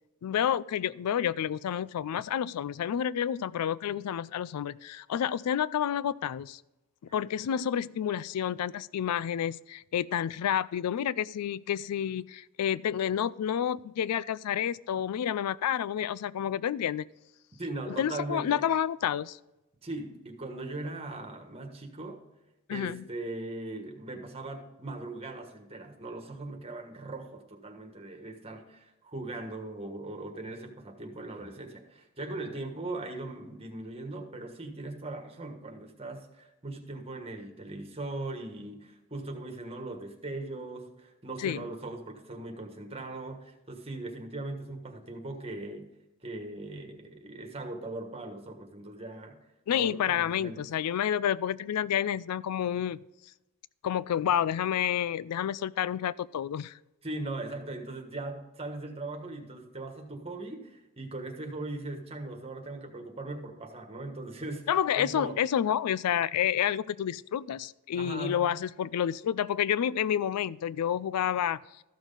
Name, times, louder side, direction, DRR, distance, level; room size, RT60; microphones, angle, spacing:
voice 1, 0.2-6.6 7.1-17.0 17.9-19.4 22.7-23.0 41.4-41.7 49.7-53.0 53.8-56.8 64.7-71.6, left 9 dB, 90° left, 0.3 m, -29 dB
voice 2, 17.6-18.7 19.8-22.2 22.7-45.9 46.2-49.4 49.7-50.6 57.0-65.4 67.9-68.6, right 2 dB, 25° right, 1.5 m, -39 dB
14.0 x 6.3 x 3.9 m
head